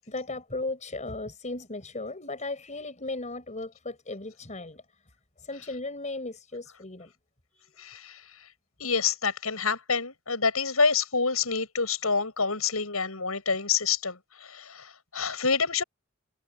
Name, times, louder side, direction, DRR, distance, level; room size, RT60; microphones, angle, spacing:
voice 1, 0.1-4.8 5.4-7.1 7.7-7.8, left 2 dB, 35° left, 5.2 m, -36 dB
voice 2, 7.8-8.2 8.8-15.8, left 5 dB, 90° left, 7.9 m, -27 dB
head